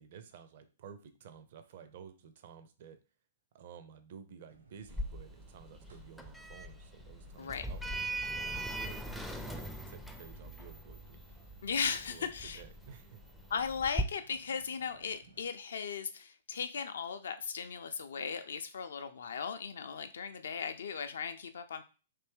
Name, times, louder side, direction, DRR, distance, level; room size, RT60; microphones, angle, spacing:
voice 1, 0.0-3.0 3.5-11.2 12.0-13.2, right 7 dB, 50° right, 10 dB, 0.5 m, -53 dB
sound 1, 4.5-15.5, right 4 dB, 75° right, 0.9 m, -62 dB
Sliding door, 4.9-14.0, right 1 dB, ahead, 0.4 m, -41 dB
voice 2, 11.6-12.6 13.5-21.8, left 6 dB, 65° left, 9 dB, 0.4 m, -37 dB
3.3 x 2.7 x 3.5 m, 0.34 s
figure-of-eight pair, 115°, 0 cm